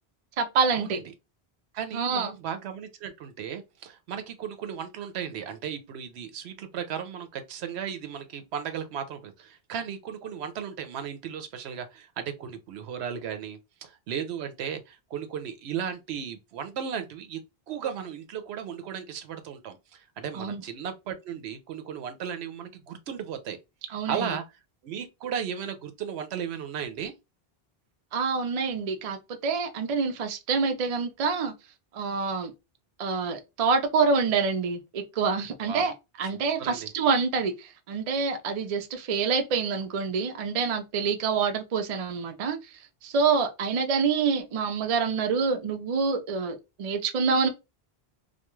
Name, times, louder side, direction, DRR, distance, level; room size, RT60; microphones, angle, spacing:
voice 1, 0.4-1.0 1.9-2.3 20.3-20.6 23.9-24.4 28.1-31.5 31.9-32.5 33.0-35.9 36.2-42.6 43.0-47.5, right 5 dB, 50° right, 0.5 m, -26 dB
voice 2, 1.7-17.4 17.7-23.6 24.1-24.4 24.8-27.1 35.6-35.9 36.3-36.9, right 8 dB, 85° right, 0.8 m, -35 dB
2.3 x 2.3 x 2.9 m
omnidirectional pair, 1.1 m